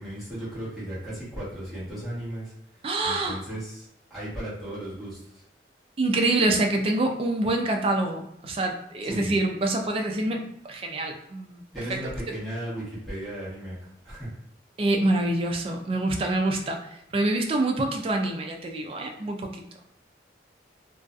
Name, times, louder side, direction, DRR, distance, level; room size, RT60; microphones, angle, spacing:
voice 1, 0.0-5.4 9.0-9.3 11.7-14.4, right 1 dB, ahead, -10 dB, 1.1 m, -36 dB
voice 2, 2.8-3.4 6.0-11.6 11.9-12.0 14.8-19.6, right 2 dB, 30° right, 3 dB, 0.3 m, -26 dB
2.5 x 2.3 x 2.3 m, 0.77 s
head